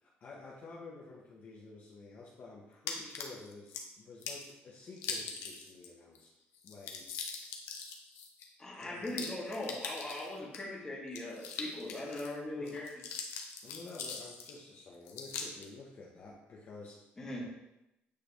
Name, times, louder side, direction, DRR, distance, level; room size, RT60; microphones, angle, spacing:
voice 1, 0.0-6.3 6.6-7.1 8.8-9.1 12.6-12.8 13.6-17.0, left 3 dB, 45° left, -3 dB, 1.0 m, -50 dB
sound 1, 2.9-3.8 4.2-4.5 5.0-5.9 6.1-6.2 6.5-10.6 11.1-12.3 12.7-14.6 15.1-15.7, left 5 dB, 90° left, 0.9 m, -42 dB
voice 2, 8.6-13.0 17.2-17.5, left 1 dB, 15° left, -4 dB, 1.7 m, -40 dB
8.5 x 3.4 x 3.4 m, 0.90 s
cardioid pair, 140°, 4 cm